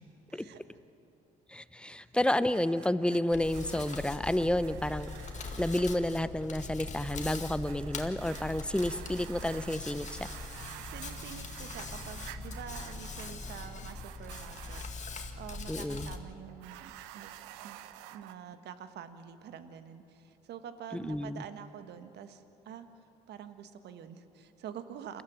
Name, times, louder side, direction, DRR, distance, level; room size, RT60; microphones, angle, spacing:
voice 1, 0.3-0.6 10.8-17.3 17.6-17.8 18.1-22.9 23.3-25.2, right 8 dB, 60° right, 10 dB, 1.4 m, -47 dB
voice 2, 1.5-5.1 5.6-10.3 15.7-16.1 20.9-21.4, left 1 dB, 5° left, 14 dB, 0.9 m, -30 dB
sound 1, 2.3-14.9 16.5-18.3, right 14 dB, 75° right, 0.8 m, -50 dB
Hands, 3.3-16.2, left 3 dB, 35° left, 2.1 m, -42 dB
28.5 x 14.0 x 7.5 m, 2.9 s
hypercardioid pair, 55°, 20 cm